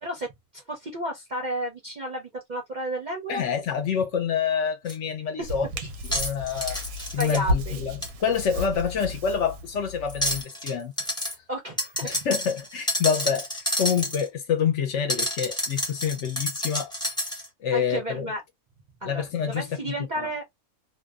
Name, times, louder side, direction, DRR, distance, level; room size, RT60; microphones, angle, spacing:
voice 1, 0.0-3.4 5.4-5.8 6.1-6.2 7.2-7.7 11.5-12.1 17.7-18.4 19.0-20.4, right 1 dB, 50° right, 0.5 m, -32 dB
voice 2, 3.3-5.7 6.1-6.8 7.1-10.9 12.0-16.9 17.6-18.3 19.0-20.0, left 7 dB, 65° left, 0.9 m, -27 dB
sound 1, 4.9-5.0 6.0-7.4 8.0-8.1 10.1-10.7 11.0-11.3 11.8-14.3 15.1-17.5, left 1 dB, 5° left, 0.5 m, -29 dB
Hands, 5.4-10.4, left 1 dB, 80° right, 1.0 m, -33 dB
2.6 x 2.1 x 2.2 m
omnidirectional pair, 1.5 m